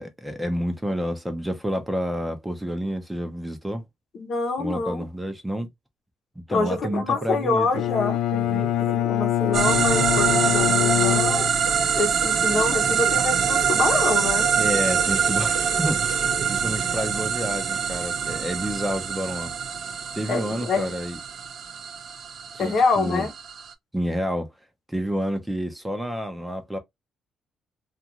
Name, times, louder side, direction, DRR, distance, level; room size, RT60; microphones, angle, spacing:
voice 1, 0.0-3.8 4.6-5.7 6.5-7.7 8.3-8.7 14.6-19.5 20.1-21.2 22.5-23.3 23.9-24.5 24.9-26.8, equal, 10° right, 0.7 m, -29 dB
voice 2, 4.1-5.1 6.5-8.2 8.8-11.5 12.0-14.5 20.3-20.9 22.6-23.3, left 4 dB, 60° left, 0.9 m, -26 dB
sound 1, 6.6-16.5, right 2 dB, 80° right, 0.9 m, -38 dB
Bowed string instrument, 7.7-11.9, left 12 dB, 80° left, 0.3 m, -24 dB
sound 2, 9.5-23.7, right 7 dB, 60° right, 0.5 m, -24 dB
2.5 x 2.5 x 2.9 m
cardioid pair, 90°, 0 cm